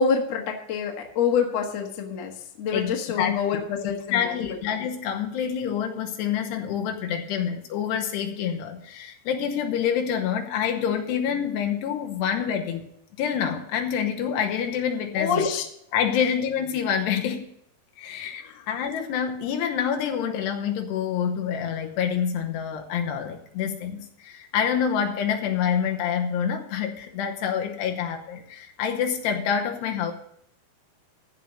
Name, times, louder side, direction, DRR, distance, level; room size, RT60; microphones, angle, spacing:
voice 1, 0.0-2.3 2.6-4.6 15.2-15.6 18.4-18.6, left 6 dB, 55° left, 2 dB, 2.1 m, -26 dB
voice 2, 2.7-3.4 4.1-12.9 13.2-15.5 15.9-17.5 18.0-30.1, left 8 dB, 80° left, 4 dB, 3.0 m, -27 dB
14.5 x 5.4 x 6.3 m, 0.73 s
omnidirectional pair, 5.0 m